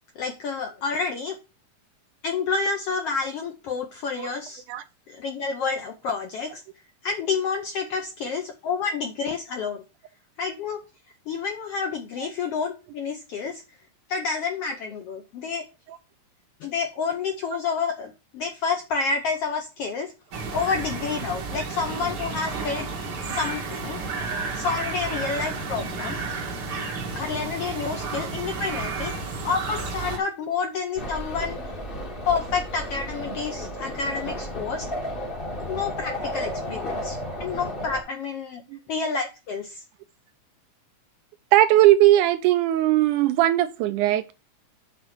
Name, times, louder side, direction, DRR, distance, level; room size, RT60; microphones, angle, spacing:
voice 1, 0.2-1.4 2.2-4.6 5.1-6.6 7.0-9.8 10.4-10.8 11.3-13.6 14.1-15.6 16.6-20.1 20.5-24.0 24.5-26.2 27.1-29.1 29.4-31.6 32.3-34.8 35.7-38.6 38.9-39.8, left 5 dB, 75° left, 1.4 m, -29 dB
sound 1, 20.3-30.2, right 4 dB, 60° right, 1.1 m, -32 dB
sound 2, 31.0-38.0, equal, 35° left, 0.9 m, -33 dB
voice 2, 41.5-44.3, right 14 dB, 80° right, 1.9 m, -19 dB
6.7 x 4.1 x 6.3 m
omnidirectional pair, 3.7 m